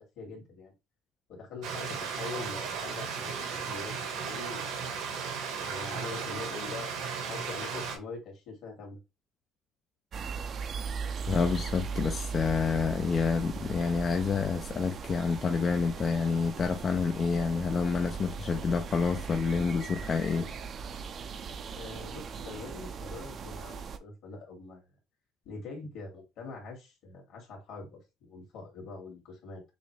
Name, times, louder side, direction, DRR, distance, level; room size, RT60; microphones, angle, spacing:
voice 1, 0.2-0.7 1.3-3.3 3.6-4.9 5.5-9.0 21.7-24.9 25.4-29.6, left 4 dB, 65° left, 2.2 m, -44 dB
Stream, 1.6-8.0, right 6 dB, 80° right, 1.5 m, -35 dB
sound 1, 10.1-24.0, right 5 dB, 45° right, 0.5 m, -38 dB
voice 2, 11.3-20.5, left 5 dB, 35° left, 0.4 m, -28 dB
6.3 x 2.1 x 3.3 m
cardioid pair, 115°, 0 cm